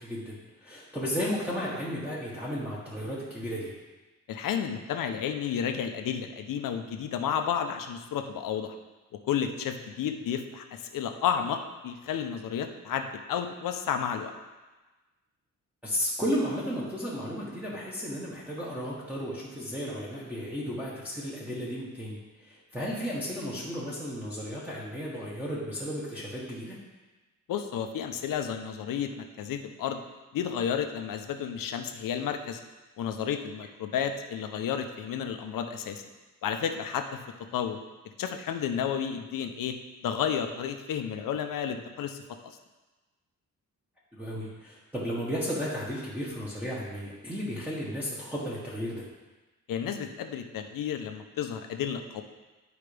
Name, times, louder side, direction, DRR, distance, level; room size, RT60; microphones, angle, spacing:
voice 1, 0.0-3.7 15.8-26.7 44.1-49.0, equal, 5° right, -8 dB, 1.2 m, -34 dB
voice 2, 4.3-8.8 9.3-14.3 27.5-30.0 30.3-32.6 33.0-36.0 36.4-37.2 37.5-37.8 38.2-39.7 40.0-42.2 49.7-52.2, left 8 dB, 85° left, 6 dB, 0.7 m, -31 dB
11.0 x 4.8 x 3.4 m, 1.2 s
wide cardioid pair, 150°, 32 cm